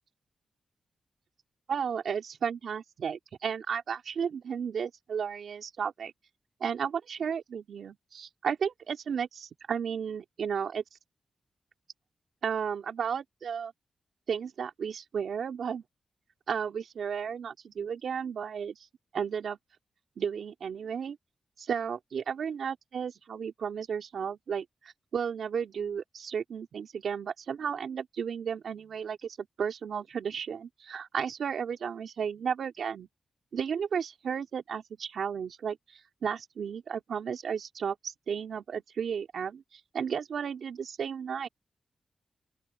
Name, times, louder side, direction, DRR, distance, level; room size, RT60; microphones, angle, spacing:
voice 1, 1.7-6.1 6.6-10.8 12.4-13.7 14.3-15.8 16.5-18.8 19.1-19.6 20.2-21.2 21.6-33.1 33.5-41.5, right 7 dB, 70° right, 3.7 m, -33 dB
open air
wide cardioid pair, 150°, 0 cm